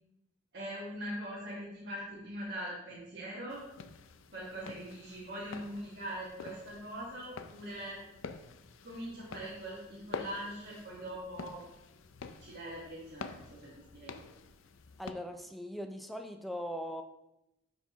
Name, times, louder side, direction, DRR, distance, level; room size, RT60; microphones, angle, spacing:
voice 1, 0.5-3.6 4.3-8.0 8.8-11.6 12.4-14.3, equal, 50° right, -8 dB, 1.7 m, -42 dB
sound 1, 3.5-15.1, left 5 dB, 90° left, 0.5 m, -48 dB
voice 2, 15.0-17.0, equal, ahead, 5 dB, 0.4 m, -40 dB
11.5 x 4.6 x 3.0 m, 0.88 s
head